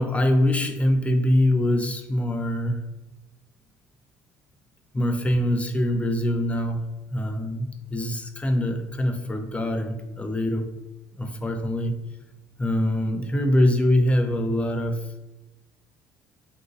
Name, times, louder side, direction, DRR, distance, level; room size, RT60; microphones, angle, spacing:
voice 1, 0.0-2.8 4.9-10.7 11.2-12.0 12.6-15.1, left 1 dB, 15° left, 5 dB, 0.5 m, -24 dB
2.7 x 2.7 x 2.6 m, 1.0 s
hypercardioid pair, 65°, 9 cm